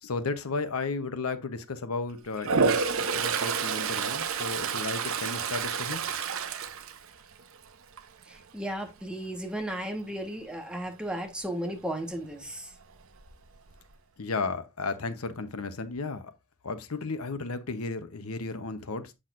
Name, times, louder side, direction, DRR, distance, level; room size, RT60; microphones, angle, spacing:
voice 1, 0.0-6.0 14.2-16.3 16.6-19.1, left 3 dB, 85° left, 0.9 m, -34 dB
Toilet flush, 2.4-7.6 8.0-8.3 12.8-12.9 13.2-13.9, right 5 dB, 65° right, 0.7 m, -29 dB
voice 2, 8.3-12.7, right 1 dB, 5° right, 1.3 m, -35 dB
7.6 x 6.4 x 2.5 m
head